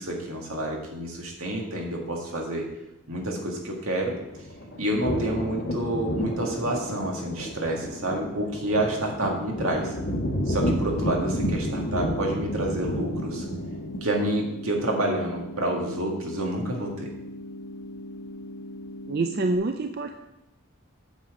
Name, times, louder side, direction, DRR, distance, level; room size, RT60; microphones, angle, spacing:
voice 1, 0.0-2.7 3.1-4.2 4.8-10.0 10.5-13.5 14.0-17.1, right 1 dB, 80° right, 0 dB, 2.0 m, -28 dB
sound 1, 4.0-14.4, equal, 55° left, 1.3 m, -31 dB
sound 2, 9.6-19.6, left 1 dB, 75° left, 1.0 m, -40 dB
voice 2, 19.1-20.2, right 3 dB, 45° right, 6 dB, 0.4 m, -26 dB
8.6 x 7.3 x 5.0 m, 0.94 s
head